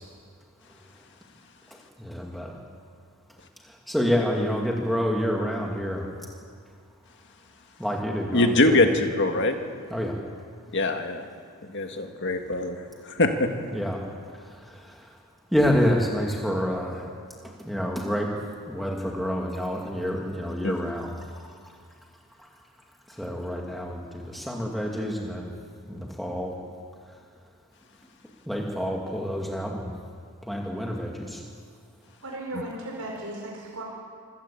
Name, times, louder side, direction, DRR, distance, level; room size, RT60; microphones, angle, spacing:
voice 1, 2.0-2.5 3.9-6.0 7.8-8.8 9.9-10.1 13.7-14.0 15.5-17.0 17.7-18.3 18.7-21.1 23.2-24.0 24.3-25.5 25.9-26.5 28.5-29.9 30.5-31.4, equal, ahead, -1 dB, 2.1 m, -27 dB
voice 2, 8.3-9.6 10.7-11.3 11.7-12.8 13.1-13.5 20.6-20.7, left 2 dB, 55° left, 5 dB, 1.9 m, -23 dB
voice 3, 32.2-33.8, right 1 dB, 75° right, -1 dB, 4.9 m, -36 dB
26.0 x 15.5 x 8.5 m, 2.2 s
head